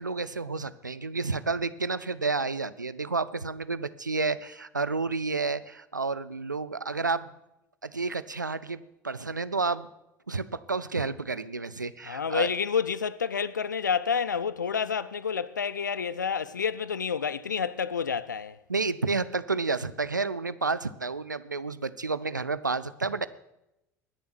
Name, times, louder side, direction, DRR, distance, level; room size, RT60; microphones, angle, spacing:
voice 1, 0.0-7.3 7.8-9.9 10.3-12.5 18.7-23.3, right 4 dB, 90° right, 0.4 m, -30 dB
voice 2, 12.1-18.6, left 6 dB, 80° left, 0.4 m, -29 dB
20.0 x 6.9 x 6.0 m
figure-of-eight pair, 70°, 10 cm